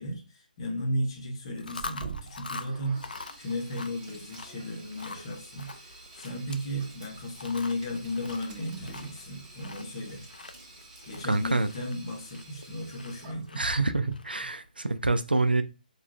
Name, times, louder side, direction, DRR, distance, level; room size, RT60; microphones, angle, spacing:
voice 1, 0.0-3.1 3.4-10.2 11.1-13.9, equal, 35° left, 0.9 m, -35 dB
Chewing mastication, 1.5-14.7, left 3 dB, 65° left, 0.4 m, -45 dB
Sink (filling or washing), 1.8-13.8, right 4 dB, 30° right, 1.2 m, -49 dB
voice 2, 11.3-11.7 13.6-15.6, right 2 dB, 80° right, 0.4 m, -26 dB
4.6 x 2.3 x 2.3 m
figure-of-eight pair, 140°, 5 cm